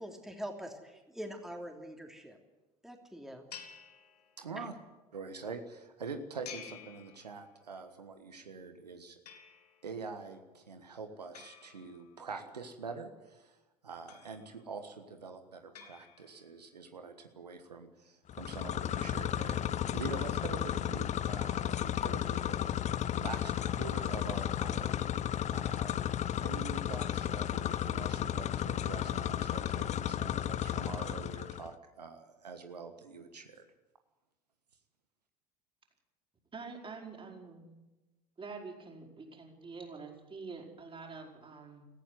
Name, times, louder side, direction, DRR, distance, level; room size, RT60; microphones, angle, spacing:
voice 1, 0.0-2.4 2.8-3.5 4.6-4.7, equal, ahead, 3 dB, 3.1 m, -44 dB
sound 1, 3.5-4.7 6.4-7.7 9.3-10.0 11.3-12.5 14.1-14.8 15.7-16.6, left 8 dB, 80° left, 2.2 m, -52 dB
voice 2, 4.4-4.7 5.1-9.2 9.8-13.6 13.8-25.1 25.5-33.7, right 4 dB, 90° right, 7 dB, 1.5 m, -45 dB
sound 2, 18.3-31.7, left 10 dB, 35° left, 0.8 m, -33 dB
voice 3, 36.5-37.7 38.4-41.8, right 4 dB, 25° right, 1 dB, 5.2 m, -46 dB
18.0 x 15.0 x 9.6 m, 1.1 s
hypercardioid pair, 75°, 20 cm